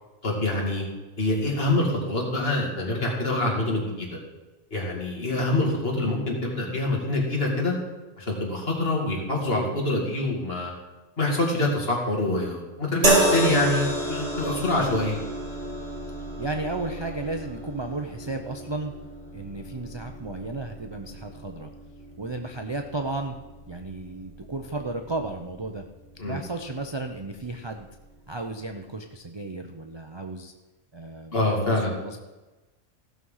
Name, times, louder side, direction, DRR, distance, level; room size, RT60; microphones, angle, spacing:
voice 1, 0.2-0.8 1.2-4.2 4.7-7.7 8.2-10.7 11.2-15.2 26.2-26.4 31.3-31.9, left 2 dB, 40° left, -2 dB, 2.7 m, -25 dB
sound 1, 13.0-26.4 27.3-27.5, right 1 dB, 70° right, 3.4 m, -31 dB
voice 2, 16.4-18.9 19.3-21.7 22.2-23.3 23.7-25.8 26.2-27.9 28.3-30.5 30.9-32.2, right 2 dB, 35° right, 5 dB, 0.4 m, -34 dB
16.0 x 6.3 x 5.6 m, 1.1 s
omnidirectional pair, 1.5 m